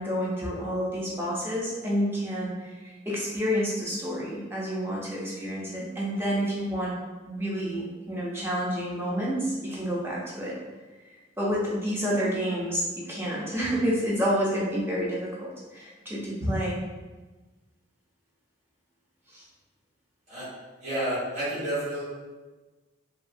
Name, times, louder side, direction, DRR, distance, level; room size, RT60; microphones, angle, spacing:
voice 1, 0.0-6.9 7.3-10.6 11.1-16.8 19.3-19.4, equal, 10° right, -5 dB, 0.5 m, -29 dB
voice 2, 20.8-22.0, right 1 dB, 35° right, -12 dB, 1.2 m, -30 dB
2.7 x 2.3 x 2.5 m, 1.2 s
head